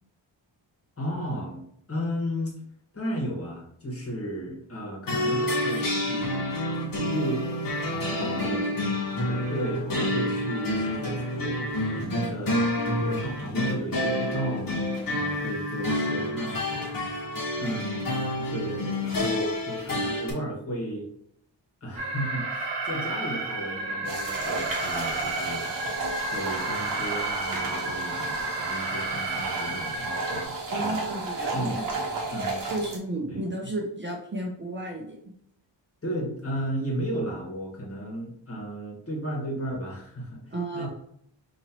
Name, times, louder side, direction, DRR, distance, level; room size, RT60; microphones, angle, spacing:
voice 1, 1.0-1.6 1.9-2.5 2.9-7.5 7.8-8.7 9.3-12.6 13.0-17.2 17.6-21.1 21.8-25.7 26.3-31.0 31.5-31.7 32.3-32.6 33.3-33.4 36.0-40.9, equal, 30° left, -3 dB, 1.7 m, -34 dB
sound 1, 5.1-20.3, left 1 dB, 45° left, 1.3 m, -28 dB
voice 2, 8.2-8.7 30.7-31.8 32.7-35.2 40.5-40.9, right 1 dB, 25° right, -1 dB, 0.7 m, -33 dB
Alarm, 22.0-30.4, right 2 dB, 65° right, 0.9 m, -32 dB
sound 2, 24.0-33.0, right 2 dB, 45° right, 1.2 m, -33 dB
5.5 x 3.0 x 2.9 m, 0.72 s
wide cardioid pair, 130°, 45 cm